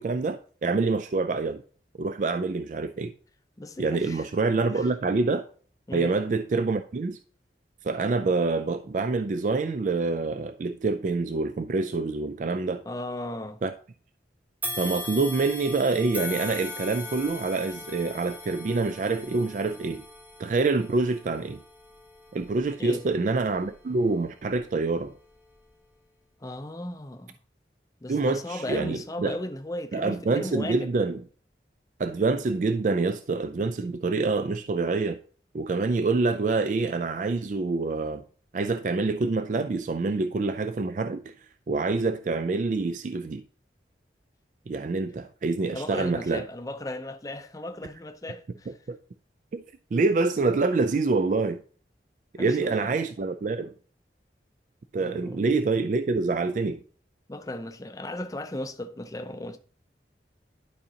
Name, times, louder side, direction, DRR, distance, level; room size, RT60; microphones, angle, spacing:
voice 1, 0.0-1.6 2.0-3.1 3.8-5.5 5.9-7.2 7.8-12.8 13.6-13.7 14.8-20.0 20.4-21.6 22.3-25.1 28.1-29.4 29.9-31.2 32.0-35.2 35.5-38.2 38.5-41.3 41.7-43.4 44.7-46.5 48.9-49.0 49.5-49.6 49.9-51.6 52.3-53.7 54.9-56.8, right 3 dB, 45° right, 0.3 m, -26 dB
voice 2, 3.6-4.3 4.7-4.9 5.9-6.1 12.9-13.6 22.8-23.0 26.4-27.4 28.0-30.9 45.7-48.8 52.4-52.9 55.0-55.4 57.3-59.6, left 1 dB, 20° left, 0.5 m, -36 dB
sound 1, 14.6-23.9 24.4-24.6 25.6-25.7, left 2 dB, 10° right, 1.0 m, -39 dB
11.5 x 5.0 x 2.8 m
head